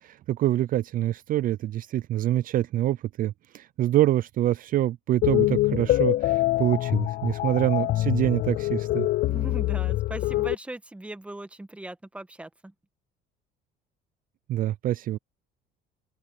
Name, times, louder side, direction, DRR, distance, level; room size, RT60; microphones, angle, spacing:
voice 1, 0.0-9.1 14.5-15.2, right 13 dB, 50° right, 0.4 m, -26 dB
sound 1, 5.2-10.5, left 16 dB, 55° left, 0.4 m, -25 dB
voice 2, 9.3-12.7, right 1 dB, 5° right, 1.3 m, -39 dB
open air
cardioid pair, 130°, 18 cm